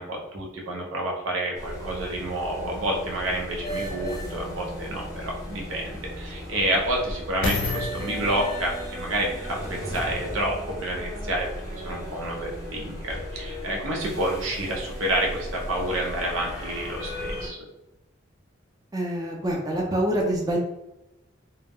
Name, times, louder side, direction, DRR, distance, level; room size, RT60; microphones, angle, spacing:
voice 1, 0.0-17.6, right 1 dB, 85° right, -1 dB, 0.7 m, -29 dB
sound 1, 1.5-17.5, equal, 20° left, 0.7 m, -36 dB
sound 2, 5.5-10.5 11.2-11.3, left 3 dB, 70° left, 0.4 m, -34 dB
voice 2, 18.9-20.6, right 1 dB, 20° right, -1 dB, 0.4 m, -26 dB
2.2 x 2.0 x 3.4 m, 0.93 s
head